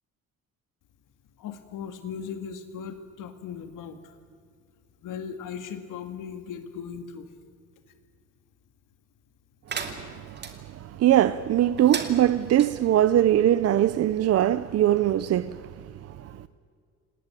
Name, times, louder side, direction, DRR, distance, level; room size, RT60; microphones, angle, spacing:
voice 1, 1.4-4.2 5.0-7.3, left 7 dB, 80° left, 2.0 m, -38 dB
sound 1, 9.7-10.5 11.8-12.7, right 5 dB, 35° right, 2.5 m, -35 dB
voice 2, 9.7-15.7 16.1-16.5, right 12 dB, 50° right, 0.6 m, -22 dB
28.0 x 19.5 x 9.0 m
cardioid pair, 165°, 31 cm